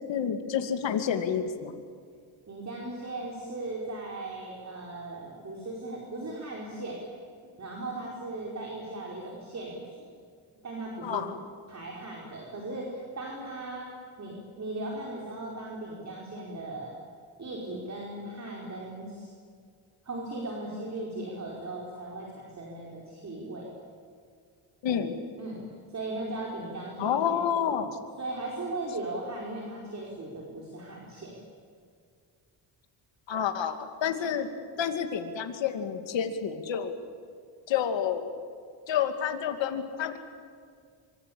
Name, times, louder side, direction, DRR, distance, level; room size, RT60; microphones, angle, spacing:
voice 1, 0.1-1.7 11.0-11.4 24.8-25.1 27.0-28.0 33.3-33.8 34.0-34.5 34.8-36.9 37.7-38.3 38.9-40.2, left 8 dB, 70° left, 7 dB, 2.6 m, -29 dB
voice 2, 2.5-7.0 7.6-9.9 10.6-11.3 11.7-13.9 14.2-16.9 17.4-19.3 20.0-23.7 25.4-25.6 25.9-27.8 28.2-31.3, right 2 dB, 35° right, -2 dB, 4.8 m, -38 dB
25.5 x 25.5 x 8.7 m, 2.1 s
cardioid pair, 120°, 47 cm